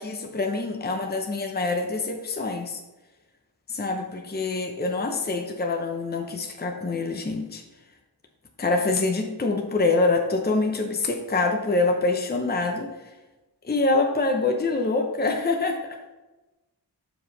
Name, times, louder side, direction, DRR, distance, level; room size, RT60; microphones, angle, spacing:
voice 1, 0.0-2.8 3.7-7.6 8.6-12.9 13.6-16.0, left 3 dB, 25° left, 3 dB, 0.7 m, -25 dB
7.3 x 4.9 x 3.9 m, 1.1 s
wide cardioid pair, 80°, 41 cm